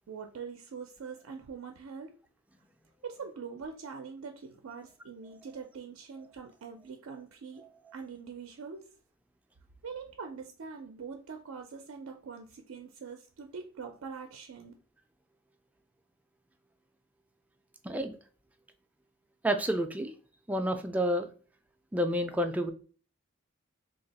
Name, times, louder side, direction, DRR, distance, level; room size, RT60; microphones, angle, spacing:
voice 1, 0.1-2.1 3.0-7.6 7.9-8.9 9.8-14.7, right 5 dB, 80° right, 4 dB, 0.4 m, -43 dB
voice 2, 17.8-18.2 19.4-20.1 20.5-21.3 21.9-22.7, equal, 5° right, 6 dB, 0.3 m, -29 dB
3.4 x 2.3 x 4.0 m, 0.40 s
head